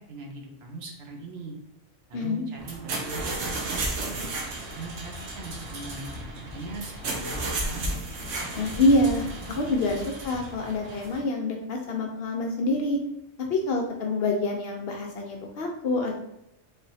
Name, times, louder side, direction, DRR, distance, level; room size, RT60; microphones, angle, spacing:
voice 1, 0.0-1.5 2.1-3.5 3.9-4.3 4.8-7.9, right 3 dB, 65° right, 1 dB, 0.8 m, -40 dB
voice 2, 2.1-2.4 8.6-13.0 13.5-16.1, left 2 dB, 65° left, 1 dB, 0.7 m, -26 dB
sound 1, 2.6-11.2, right 2 dB, 85° right, 1.1 m, -34 dB
sound 2, 4.6-9.9, left 2 dB, 5° right, 1.0 m, -43 dB
3.3 x 2.9 x 2.6 m, 0.83 s
omnidirectional pair, 1.3 m